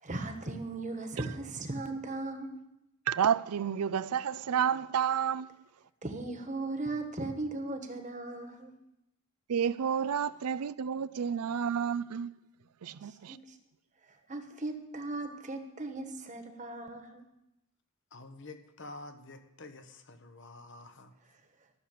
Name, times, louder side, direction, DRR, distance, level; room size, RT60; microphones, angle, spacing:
voice 1, 0.0-2.6 6.0-8.7 13.0-13.4 14.3-17.2, right 2 dB, 35° right, 1.3 m, -37 dB
voice 2, 3.1-5.5 9.5-12.3 12.8-13.4, right 8 dB, 85° right, 0.4 m, -30 dB
voice 3, 18.1-21.1, left 2 dB, 55° left, 1.1 m, -48 dB
14.0 x 6.6 x 8.4 m
head